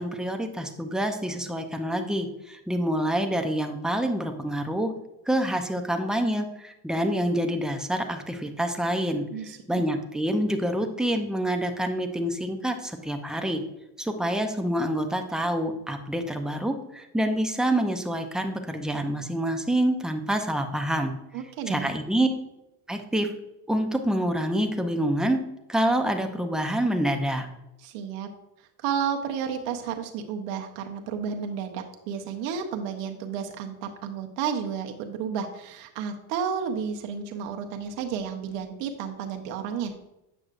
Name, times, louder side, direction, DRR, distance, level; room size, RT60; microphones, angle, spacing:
voice 1, 0.0-4.9 5.3-9.2 9.7-13.6 14.0-21.1 21.7-22.3 22.9-23.3 23.7-25.4 25.7-27.5, right 1 dB, ahead, 5 dB, 0.5 m, -27 dB
voice 2, 9.3-9.8 21.3-21.9 27.8-28.3 28.8-39.9, right 7 dB, 70° right, 4 dB, 0.9 m, -32 dB
7.9 x 6.1 x 2.5 m, 0.89 s
supercardioid pair, 110°, 46 cm